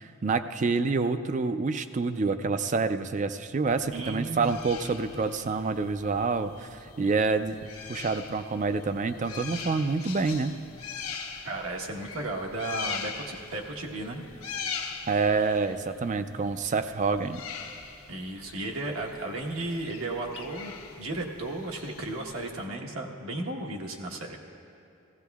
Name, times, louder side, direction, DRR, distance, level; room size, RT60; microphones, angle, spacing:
voice 1, 0.0-7.6 7.9-10.6 15.1-17.4, right 4 dB, 35° right, 10 dB, 0.3 m, -27 dB
sound 1, 3.7-22.6, left 5 dB, 90° left, 1.2 m, -42 dB
voice 2, 3.9-4.5 11.4-14.2 18.1-20.7 21.0-24.4, right 2 dB, 75° right, 1 dB, 1.2 m, -34 dB
16.5 x 16.0 x 2.3 m, 2.6 s
head